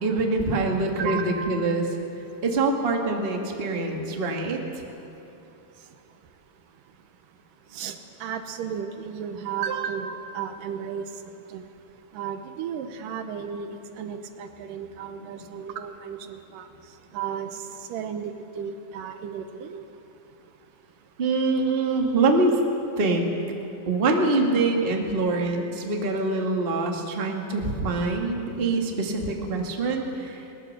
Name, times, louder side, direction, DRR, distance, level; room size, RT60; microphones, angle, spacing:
voice 1, 0.0-1.8 2.2-4.8 15.0-15.5 21.2-22.6 23.0-23.3 23.8-30.5, right 3 dB, 25° right, 1 dB, 1.4 m, -25 dB
voice 2, 1.0-1.5 7.7-11.0 11.5-11.6 12.1-13.7 14.0-16.7 17.1-17.5 17.9-19.8, right 8 dB, 80° right, 8 dB, 2.6 m, -33 dB
21.0 x 20.0 x 6.6 m, 3.0 s
omnidirectional pair, 3.8 m